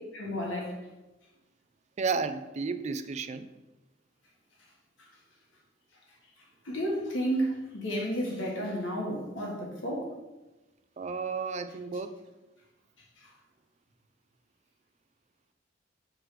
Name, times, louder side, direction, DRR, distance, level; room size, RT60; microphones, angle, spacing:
voice 1, 0.1-0.9 5.0-5.1 6.4-10.2 13.0-13.3, equal, 80° left, 1.4 m, -32 dB
voice 2, 2.0-3.5 11.0-12.1, right 4 dB, 35° right, 0.4 m, -32 dB
7.3 x 3.3 x 4.9 m
head